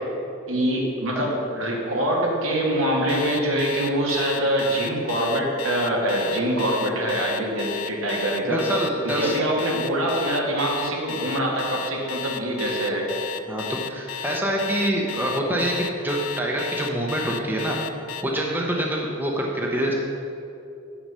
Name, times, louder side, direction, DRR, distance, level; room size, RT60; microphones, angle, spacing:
voice 1, 0.5-8.6 9.0-13.1, right 1 dB, 75° right, -2 dB, 1.7 m, -24 dB
Alarm, 3.1-18.2, left 8 dB, 70° left, 0.4 m, -33 dB
voice 2, 8.5-9.3 13.5-17.8 18.2-19.9, right 1 dB, 10° right, -1 dB, 0.7 m, -25 dB
7.9 x 6.0 x 5.5 m, 2.7 s
head